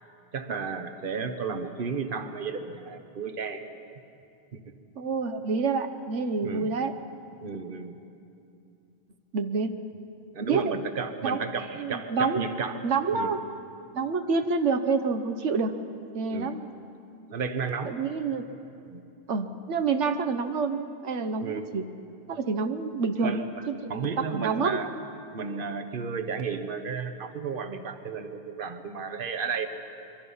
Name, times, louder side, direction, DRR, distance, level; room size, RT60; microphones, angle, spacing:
voice 1, 0.3-3.6 4.5-4.7 6.4-6.7 7.4-7.9 10.3-12.7 13.1-13.3 16.3-16.6 17.3-18.0 18.8-19.0 21.4-21.7 23.2-23.4 23.9-24.9 25.3-29.7, right 5 dB, 50° right, 8 dB, 1.3 m, -33 dB
voice 2, 5.0-6.9 9.3-9.7 10.4-10.7 11.2-12.4 12.8-13.4 13.9-15.7 16.1-16.7 17.9-18.5 19.3-21.8 22.3-24.8, right 4 dB, 90° right, 8 dB, 1.2 m, -28 dB
26.0 x 23.0 x 5.6 m, 2.6 s
omnidirectional pair, 1.2 m